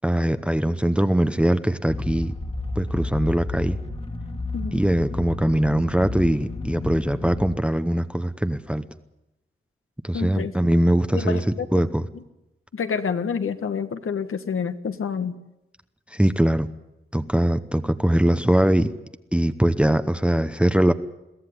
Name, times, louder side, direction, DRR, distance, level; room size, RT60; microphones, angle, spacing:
voice 1, 0.0-2.3 2.8-3.8 4.7-8.9 10.0-11.4 11.7-12.0 16.1-16.7 17.1-18.9 19.3-20.9, right 1 dB, 5° right, 10 dB, 0.8 m, -21 dB
sound 1, 1.9-7.5, left 2 dB, 25° left, 1.9 m, -31 dB
voice 2, 10.1-10.7 11.1-11.8 12.1-12.2 12.7-15.3, left 6 dB, 80° left, 9 dB, 1.7 m, -28 dB
23.0 x 16.0 x 9.8 m, 0.94 s
wide cardioid pair, 140°, 21 cm